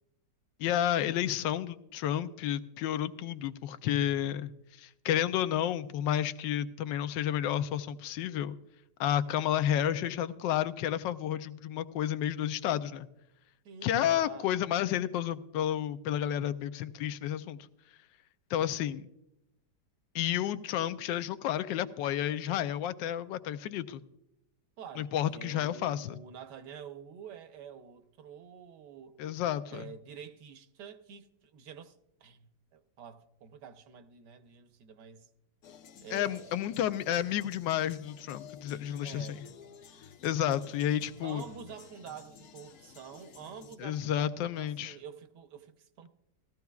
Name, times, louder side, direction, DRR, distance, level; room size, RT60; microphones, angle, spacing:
voice 1, 0.6-4.5 4.8-8.6 9.0-13.1 13.8-17.6 18.5-19.1 20.1-24.0 25.0-26.2 29.2-29.9 36.1-39.3 40.2-41.4 43.8-45.0, left 11 dB, 85° left, 1.3 m, -31 dB
voice 2, 13.6-14.8 24.8-29.2 29.7-35.3 36.0-36.6 39.0-39.4 41.2-44.3 44.6-46.1, right 7 dB, 70° right, 1.4 m, -48 dB
sound 1, 35.6-43.8, left 7 dB, 65° left, 1.0 m, -53 dB
17.0 x 14.0 x 2.3 m
omnidirectional pair, 1.9 m